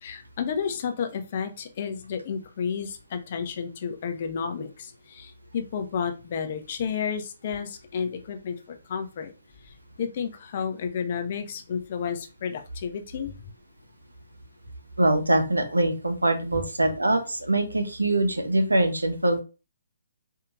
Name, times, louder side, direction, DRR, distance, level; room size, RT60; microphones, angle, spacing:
voice 1, 0.0-9.3 9.6-13.3, left 6 dB, 45° left, 6 dB, 0.7 m, -31 dB
voice 2, 15.0-19.4, right 1 dB, 90° right, 6 dB, 0.9 m, -23 dB
4.7 x 2.8 x 2.5 m, 0.31 s
figure-of-eight pair, 135°, 0 cm